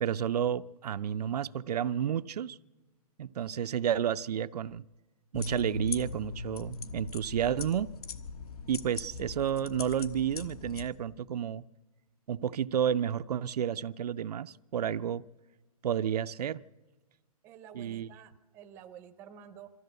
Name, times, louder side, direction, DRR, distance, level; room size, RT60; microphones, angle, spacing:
voice 1, 0.0-2.6 3.2-4.8 5.3-7.9 8.7-11.6 12.3-15.3 15.8-16.6 17.7-18.1, right 9 dB, 85° right, 0.5 m, -31 dB
sound 1, 5.3-10.9, left 3 dB, 75° left, 1.4 m, -39 dB
voice 2, 17.4-19.7, right 8 dB, 10° right, 0.5 m, -50 dB
23.5 x 14.5 x 8.0 m
hypercardioid pair, 170°, 20 cm